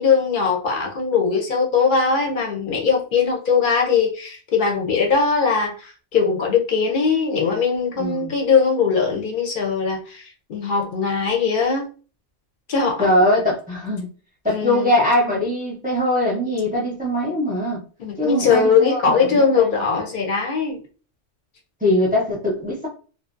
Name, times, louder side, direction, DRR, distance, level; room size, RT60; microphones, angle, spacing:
voice 1, 0.0-11.9 12.7-13.1 14.5-14.9 18.0-20.8, left 5 dB, 55° left, 0.6 m, -20 dB
voice 2, 8.0-8.3 13.0-14.0 14.4-17.8 18.2-19.8 21.8-22.9, left 1 dB, 10° right, 0.6 m, -21 dB
2.6 x 2.0 x 2.4 m
omnidirectional pair, 1.3 m